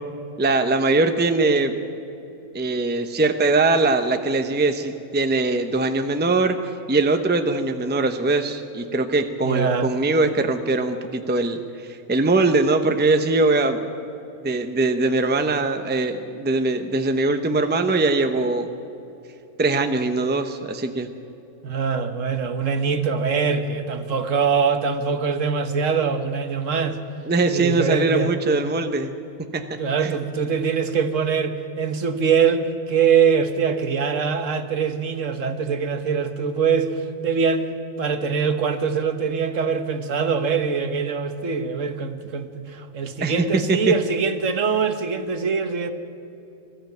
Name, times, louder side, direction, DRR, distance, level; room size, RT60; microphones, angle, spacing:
voice 1, 0.4-1.8 2.5-6.6 6.9-13.8 14.4-18.7 19.6-21.1 27.2-29.1 29.5-30.1 43.2-43.8, right 3 dB, 10° right, 7 dB, 0.7 m, -21 dB
voice 2, 9.4-9.9 21.6-27.0 27.5-28.3 29.8-45.9, right 6 dB, 60° right, 8 dB, 1.4 m, -23 dB
20.5 x 14.0 x 9.2 m, 2.8 s
omnidirectional pair, 1.6 m